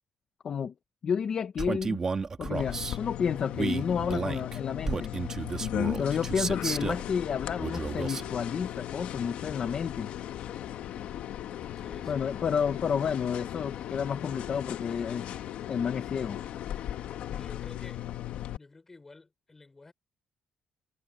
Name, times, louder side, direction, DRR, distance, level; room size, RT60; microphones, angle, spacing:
voice 1, 1.0-2.0 2.4-5.1 6.0-10.1 12.1-15.3 15.7-16.4, left 7 dB, 35° left, 1.1 m, -31 dB
Male speech man speaking, 1.6-3.0 3.5-7.1 7.6-8.3, right 4 dB, 25° right, 1.7 m, -32 dB
sound 1, 2.5-18.6, left 11 dB, 65° left, 1.4 m, -37 dB
voice 2, 11.8-12.5 17.3-18.0 18.5-19.9, left 3 dB, 15° left, 6.2 m, -51 dB
cardioid pair, 175°, 2 cm